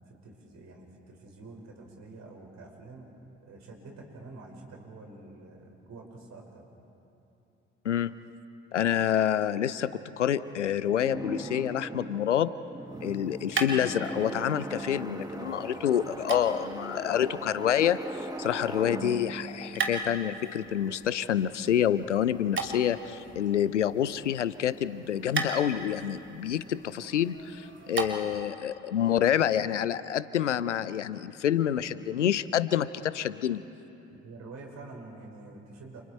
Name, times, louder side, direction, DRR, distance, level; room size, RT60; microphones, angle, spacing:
voice 1, 0.0-3.1 3.4-6.6 12.9-13.1 15.2-15.8 34.1-36.0, right 3 dB, 50° right, 0 dB, 5.6 m, -47 dB
voice 2, 8.7-12.5 13.0-33.6, left 10 dB, 85° left, 16 dB, 0.6 m, -27 dB
sound 1, 11.0-20.9, right 1 dB, 10° right, 1.6 m, -39 dB
sound 2, 12.9-28.5, right 3 dB, 35° right, 3.0 m, -39 dB
29.5 x 28.0 x 4.5 m, 2.9 s
figure-of-eight pair, 45°, 35 cm